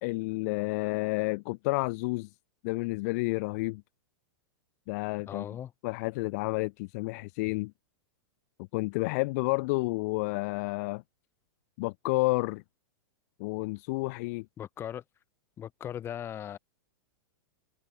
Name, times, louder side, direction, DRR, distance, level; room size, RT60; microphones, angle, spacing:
voice 1, 0.0-2.3 2.6-3.8 4.9-5.5 5.8-7.7 8.7-11.0 11.8-12.6 13.4-14.5, left 25 dB, 40° left, 1.2 m, -30 dB
voice 2, 5.3-5.7 14.6-15.0 15.6-16.6, left 10 dB, 20° left, 3.1 m, -38 dB
supercardioid pair, 165°, 13 cm